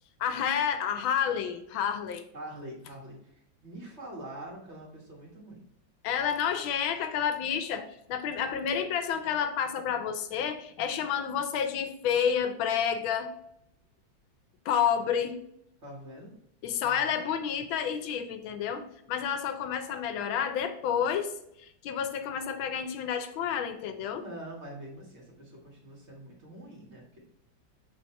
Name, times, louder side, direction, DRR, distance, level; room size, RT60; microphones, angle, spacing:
voice 1, 0.2-2.2 6.0-13.3 14.6-15.4 16.6-21.3 21.6-24.2, left 8 dB, 80° left, 1.4 m, -30 dB
voice 2, 2.3-5.6 15.8-16.3 16.8-17.2 24.1-27.2, right 1 dB, 35° right, 1.6 m, -44 dB
6.4 x 3.5 x 4.3 m
omnidirectional pair, 2.2 m